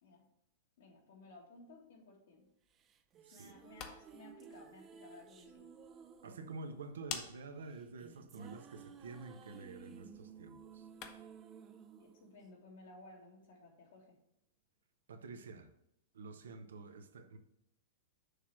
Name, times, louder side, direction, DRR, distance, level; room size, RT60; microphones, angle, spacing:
voice 1, 0.8-2.5 3.3-5.7 12.0-14.2, left 2 dB, 70° left, 1 dB, 1.8 m, -57 dB
sound 1, 2.8-13.2, right 7 dB, 30° right, 0.4 m, -56 dB
sound 2, 3.5-11.4, left 7 dB, 45° left, 0.8 m, -52 dB
voice 2, 6.2-10.9 15.1-15.7 16.1-17.4, right 3 dB, 75° right, 8 dB, 0.7 m, -48 dB
6.4 x 3.0 x 5.8 m, 0.79 s
hypercardioid pair, 110°, 0 cm